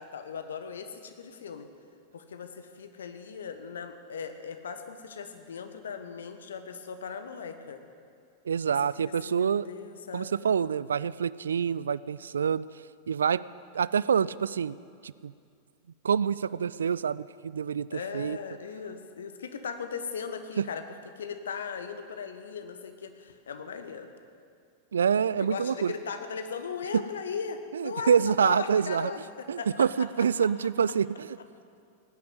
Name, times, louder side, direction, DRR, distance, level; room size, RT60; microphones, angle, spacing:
voice 1, 0.0-1.7 2.1-7.8 8.7-8.8 9.0-10.3 17.9-20.8 21.2-24.1 25.4-30.1 30.4-30.5, left 6 dB, 65° left, 8 dB, 1.2 m, -38 dB
voice 2, 8.5-9.7 10.1-12.7 13.1-13.4 13.7-14.8 15.0-15.3 16.0-18.4 20.6-20.7 24.9-25.9 27.7-29.1 29.5-31.4, right 7 dB, 70° right, 19 dB, 0.3 m, -26 dB
17.5 x 10.0 x 7.9 m, 2.4 s
figure-of-eight pair, 90°, 0 cm